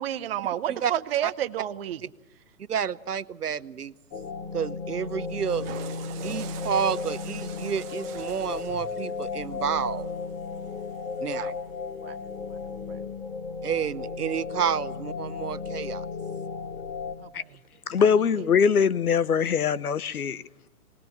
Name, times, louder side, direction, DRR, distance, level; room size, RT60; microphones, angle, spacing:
voice 1, 0.0-2.0 11.3-11.5 12.0-12.2 12.9-13.0 17.2-17.6 18.0-18.1, right 11 dB, 40° right, 0.7 m, -31 dB
voice 2, 2.7-3.9 4.5-5.7 6.2-10.1 11.2-11.5 13.6-16.1, right 7 dB, 75° right, 0.9 m, -30 dB
sound 1, 4.1-17.1, left 4 dB, 25° left, 1.8 m, -35 dB
Water / Toilet flush, 5.2-11.5, right 10 dB, 15° right, 1.0 m, -45 dB
voice 3, 17.9-20.4, left 6 dB, 70° left, 0.9 m, -22 dB
20.5 x 20.0 x 7.5 m
figure-of-eight pair, 130°, 46 cm